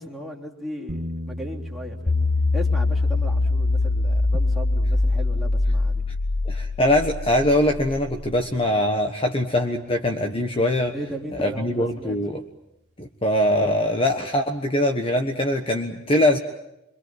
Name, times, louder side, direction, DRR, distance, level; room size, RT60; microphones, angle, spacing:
voice 1, 0.0-6.0 10.9-12.2, equal, ahead, -3 dB, 3.3 m, -37 dB
sound 1, 0.9-10.9, left 1 dB, 60° right, 2.2 m, -40 dB
sound 2, 2.1-8.3, left 2 dB, 85° left, 1.2 m, -23 dB
voice 2, 6.4-10.9 11.3-12.4 13.0-16.4, left 1 dB, 30° left, 4 dB, 1.3 m, -22 dB
27.0 x 24.5 x 7.7 m, 0.86 s
head